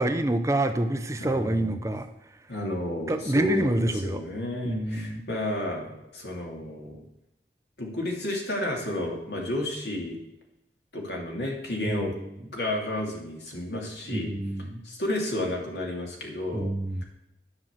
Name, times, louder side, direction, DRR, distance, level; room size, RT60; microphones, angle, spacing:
voice 1, 0.0-2.1 3.1-4.2 4.6-5.2 11.9-12.3 14.1-14.8 16.5-17.0, right 1 dB, 15° right, 8 dB, 0.5 m, -27 dB
voice 2, 1.2-1.9 2.5-7.0 7.8-10.2 10.9-12.1 12.5-14.3 14.8-16.7, left 1 dB, 75° left, 0 dB, 2.7 m, -31 dB
10.0 x 6.0 x 7.3 m, 0.88 s
head